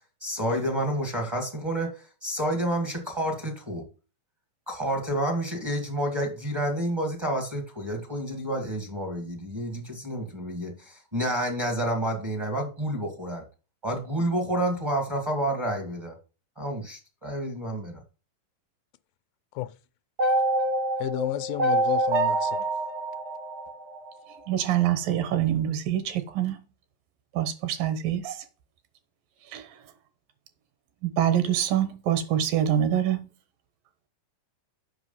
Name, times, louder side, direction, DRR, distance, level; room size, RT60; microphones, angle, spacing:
voice 1, 0.2-3.9 4.7-13.4 13.8-16.2 16.6-18.0, right 1 dB, 40° right, 0.4 m, -29 dB
sound 1, 20.2-24.4, right 1 dB, 60° right, 0.9 m, -26 dB
voice 2, 21.0-22.7, left 14 dB, 85° left, 2.2 m, -31 dB
voice 3, 24.5-26.6 27.3-28.4 29.5-29.6 31.0-33.3, right 10 dB, 80° right, 2.7 m, -25 dB
7.9 x 5.7 x 5.5 m
omnidirectional pair, 4.0 m